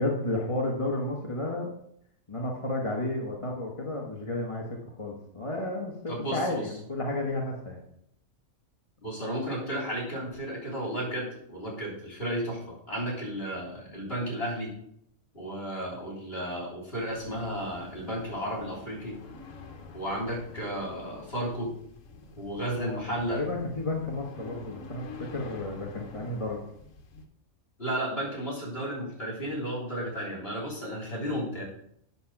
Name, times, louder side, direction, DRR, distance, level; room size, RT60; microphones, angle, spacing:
voice 1, 0.0-1.7 2.3-4.6 5.0-7.8 22.8-23.0 23.3-26.6, left 2 dB, 25° left, -1 dB, 1.2 m, -32 dB
voice 2, 6.1-6.7 9.0-14.7 15.3-19.2 19.9-21.7 22.4-23.4 27.8-31.6, equal, 45° left, -2 dB, 3.8 m, -33 dB
sound 1, 17.0-27.3, left 3 dB, 65° left, 1.4 m, -47 dB
8.2 x 6.7 x 5.9 m, 0.70 s
omnidirectional pair, 1.5 m